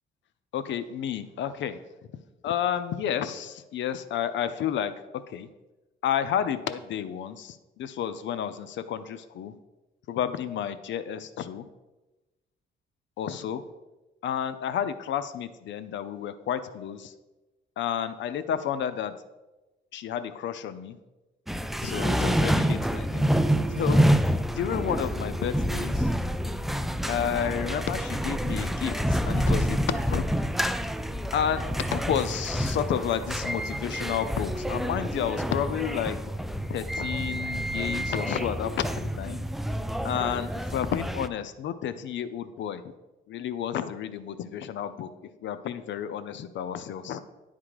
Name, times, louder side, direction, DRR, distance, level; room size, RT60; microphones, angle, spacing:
voice 1, 0.5-1.8 2.4-4.9 5.3-5.5 6.0-9.5 10.1-11.6 13.2-13.6 14.2-17.1 17.8-19.1 19.9-21.0 21.8-23.3 23.8-24.1 24.5-26.1 27.1-30.2 31.3-31.6 31.9-36.2 36.7-39.4 40.0-42.9 43.3-45.1 45.4-47.2, left 9 dB, 70° left, 13 dB, 0.5 m, -31 dB
sound 1, 21.5-41.3, equal, ahead, 0.4 m, -28 dB
10.5 x 3.7 x 4.8 m, 1.1 s
cardioid pair, 90°, 20 cm